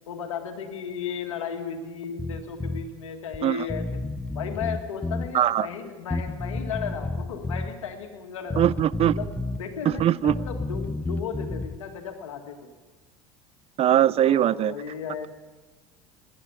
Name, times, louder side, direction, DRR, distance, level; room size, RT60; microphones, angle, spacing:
voice 1, 0.1-4.0 4.3-8.7 9.1-9.3 9.6-12.7 14.2-15.3, left 7 dB, 90° left, 5 dB, 1.9 m, -35 dB
Bass guitar, 2.2-2.9 3.3-3.4 3.7-5.3 6.1-7.7 8.5-9.6 9.9-11.8, left 2 dB, 10° left, 0.7 m, -31 dB
voice 2, 5.3-5.7 8.6-9.2 9.8-10.4 13.8-14.7, right 11 dB, 40° right, 21 dB, 0.4 m, -21 dB
17.5 x 10.5 x 7.0 m, 1.2 s
hypercardioid pair, 80°, 16 cm